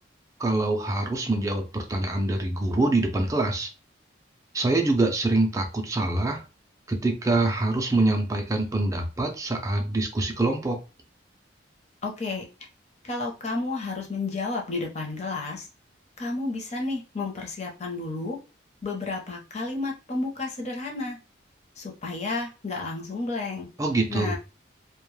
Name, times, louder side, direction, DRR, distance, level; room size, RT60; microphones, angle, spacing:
voice 1, 0.4-3.7 4.5-6.4 6.9-10.8 23.8-24.4, right 2 dB, 15° right, 2 dB, 0.4 m, -25 dB
voice 2, 12.0-12.4 13.0-15.7 16.2-18.4 18.8-21.2 21.8-23.7 24.1-24.4, left 3 dB, 35° left, 0 dB, 0.6 m, -31 dB
2.2 x 2.0 x 3.1 m, 0.31 s
head